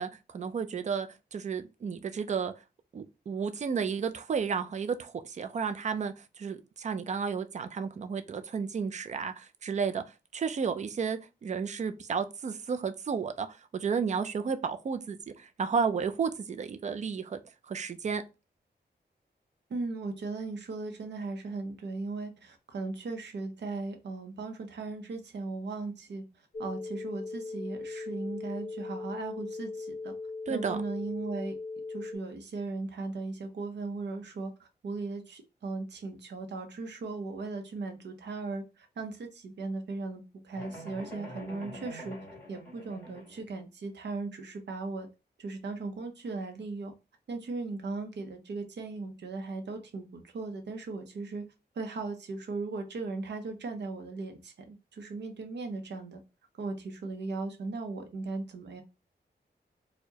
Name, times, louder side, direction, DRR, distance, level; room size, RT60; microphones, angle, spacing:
voice 1, 0.0-2.5 2.9-10.0 10.3-13.5 13.7-17.4 17.7-18.2 30.5-30.8, right 6 dB, 40° right, 0.4 m, -32 dB
voice 2, 19.7-26.2 26.6-30.1 30.5-31.6 31.9-42.2 42.5-45.1 45.4-46.9 47.3-51.4 51.8-56.2 56.6-58.8, right 3 dB, 75° right, 0.7 m, -37 dB
sound 1, 26.5-32.2, left 3 dB, 45° left, 0.7 m, -39 dB
sound 2, 40.5-43.4, equal, 15° left, 1.7 m, -45 dB
4.5 x 2.1 x 2.8 m
wide cardioid pair, 160°, 18 cm